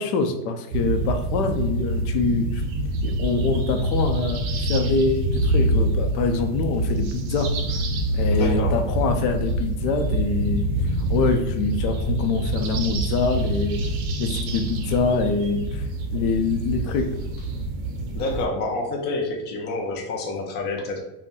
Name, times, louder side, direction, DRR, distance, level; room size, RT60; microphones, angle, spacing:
voice 1, 0.0-2.6 3.0-7.8 8.1-10.6 11.1-13.8 14.2-15.9 16.1-17.2, left 4 dB, 70° left, 6 dB, 0.6 m, -25 dB
sound 1, 0.7-18.5, right 1 dB, 50° right, 0.6 m, -25 dB
voice 2, 8.3-8.8 18.1-21.0, left 2 dB, 25° left, 0 dB, 0.4 m, -28 dB
2.5 x 2.2 x 3.6 m, 0.93 s
supercardioid pair, 130°, 50 cm